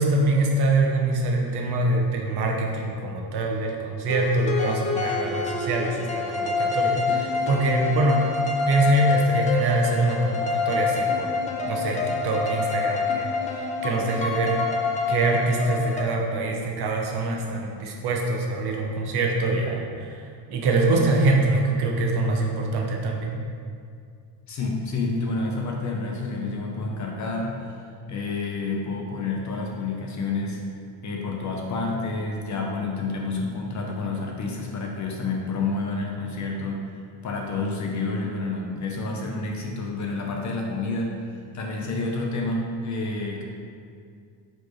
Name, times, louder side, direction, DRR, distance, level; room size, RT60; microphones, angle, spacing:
voice 1, 0.0-8.2 8.7-11.3 11.7-13.3 13.5-14.6 15.1-20.2 20.5-23.4, right 2 dB, 55° right, 0 dB, 0.9 m, -24 dB
sound 1, 4.0-16.0, left 4 dB, 20° left, 0.3 m, -27 dB
voice 2, 24.5-27.8 28.1-30.6 31.0-36.8 37.2-43.4, left 3 dB, 35° left, 0 dB, 0.7 m, -29 dB
7.4 x 4.5 x 3.1 m, 2.2 s
cardioid pair, 160°, 48 cm